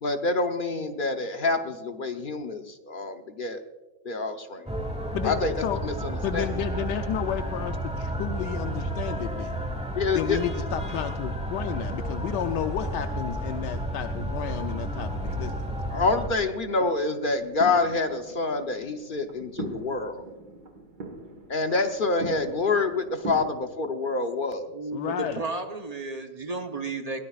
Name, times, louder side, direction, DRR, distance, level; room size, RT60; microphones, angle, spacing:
voice 1, 0.0-3.6 4.0-4.7 5.2-5.5 5.8-6.4 9.9-10.4 15.9-20.2 21.5-24.7, left 3 dB, 45° left, 6 dB, 0.7 m, -27 dB
sound 1, 4.7-16.3, right 1 dB, 5° right, 1.1 m, -32 dB
voice 2, 5.1-5.8 6.2-9.6 10.1-15.7 24.9-25.4, left 10 dB, 80° left, 7 dB, 1.2 m, -32 dB
sound 2, 15.2-23.6, right 2 dB, 65° right, 2.0 m, -41 dB
voice 3, 24.7-27.2, right 3 dB, 35° right, 5 dB, 0.6 m, -33 dB
22.0 x 17.0 x 2.4 m, 1.1 s
omnidirectional pair, 1.9 m